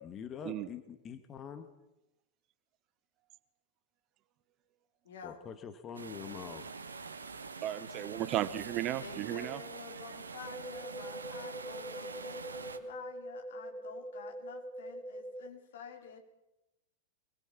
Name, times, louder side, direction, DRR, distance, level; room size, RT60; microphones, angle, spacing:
voice 1, 0.0-1.7 5.2-6.6, left 7 dB, 25° left, 9 dB, 1.7 m, -44 dB
voice 2, 5.1-5.5 9.0-16.2, left 6 dB, 60° left, 3 dB, 4.3 m, -50 dB
sound 1, 5.9-12.8, right 4 dB, 75° right, 1.7 m, -45 dB
voice 3, 7.6-9.6, right 13 dB, 35° right, 16 dB, 0.9 m, -35 dB
sound 2, 10.5-15.5, right 1 dB, 15° right, 1.3 m, -44 dB
24.0 x 22.0 x 6.0 m, 0.92 s
figure-of-eight pair, 90°, 0 cm